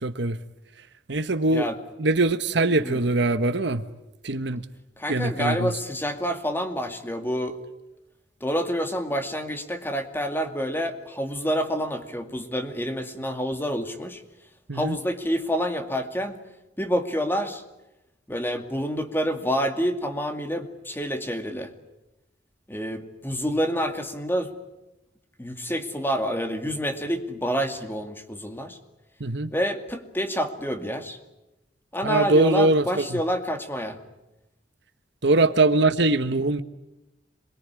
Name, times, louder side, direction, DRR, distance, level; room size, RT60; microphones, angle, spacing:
voice 1, 0.0-0.4 1.1-1.7 2.0-3.8 4.2-4.6 5.1-5.7 14.7-15.0 29.2-29.5 32.0-33.2 35.2-36.6, right 2 dB, 65° right, 1.3 m, -22 dB
voice 2, 5.0-7.6 8.4-14.2 14.7-16.4 16.8-17.6 18.3-21.7 22.7-24.5 25.4-28.8 29.5-31.2 31.9-34.0, equal, 10° left, 2.3 m, -28 dB
27.5 x 22.0 x 9.8 m
head